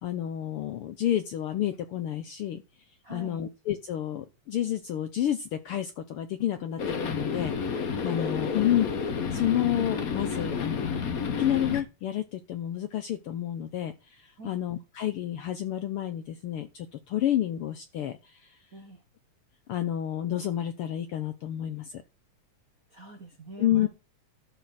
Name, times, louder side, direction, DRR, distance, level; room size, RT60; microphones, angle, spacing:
voice 1, 0.0-2.6 3.1-8.9 9.3-11.0 11.4-18.6 19.7-22.0 23.6-23.9, left 11 dB, 75° left, 9 dB, 1.3 m, -30 dB
voice 2, 3.0-3.4 8.2-8.6 14.4-14.6 18.7-19.0 22.9-23.9, right 2 dB, 50° right, 5 dB, 1.0 m, -45 dB
sound 1, 6.8-11.8, left 5 dB, 50° left, 1.0 m, -30 dB
12.0 x 4.3 x 7.6 m, 0.28 s
omnidirectional pair, 3.3 m